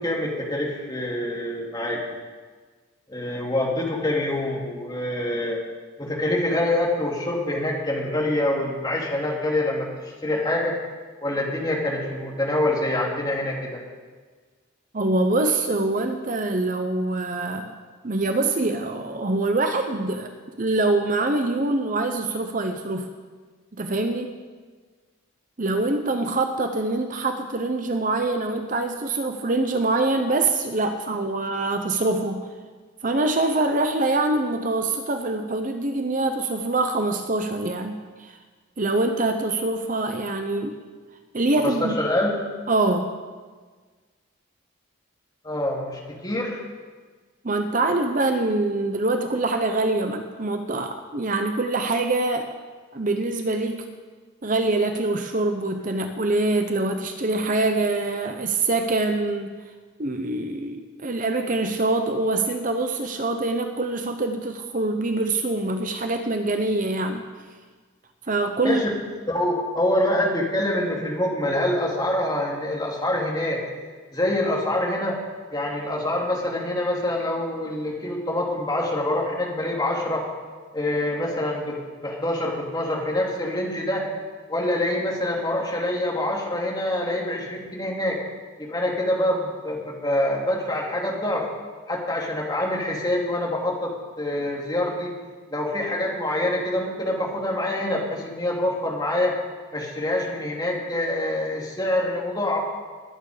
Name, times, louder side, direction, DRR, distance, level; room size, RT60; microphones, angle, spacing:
voice 1, 0.0-2.0 3.1-5.6 6.0-10.8 11.2-13.8 41.5-42.3 45.4-46.6 68.6-68.9 69.3-73.6 74.1-75.2 75.5-80.2 80.7-84.1 84.5-88.2 88.6-91.4 91.9-95.1 95.5-99.3 99.7-102.6, left 1 dB, 20° left, -2 dB, 2.6 m, -25 dB
voice 2, 14.9-17.7 18.0-20.3 20.6-23.1 23.8-24.4 25.6-32.5 33.0-38.4 38.8-40.8 41.3-42.0 42.7-43.1 47.4-52.5 52.9-53.9 54.4-59.5 60.0-67.3 68.3-68.8, right 2 dB, 40° right, 6 dB, 0.8 m, -24 dB
20.5 x 9.2 x 5.0 m, 1.4 s
head